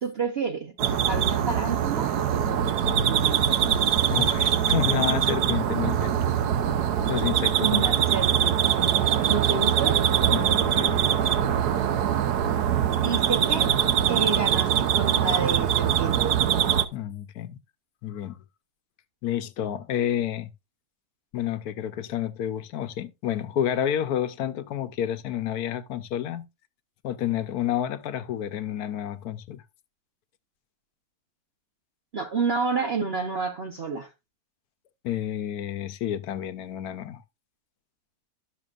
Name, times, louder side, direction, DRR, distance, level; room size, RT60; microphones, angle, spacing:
voice 1, 0.0-3.6 7.6-8.7 9.3-10.0 13.0-13.7 14.1-16.3 32.1-34.1, right 4 dB, 45° right, 1.0 m, -30 dB
sound 1, 0.8-16.8, right 9 dB, 80° right, 1.3 m, -23 dB
voice 2, 4.1-6.3 7.1-7.8 10.3-11.1 16.9-17.6 18.0-18.4 19.2-20.5 21.3-26.5 27.0-29.6 35.0-37.2, left 10 dB, 75° left, 1.2 m, -30 dB
12.5 x 6.6 x 2.4 m
omnidirectional pair, 1.7 m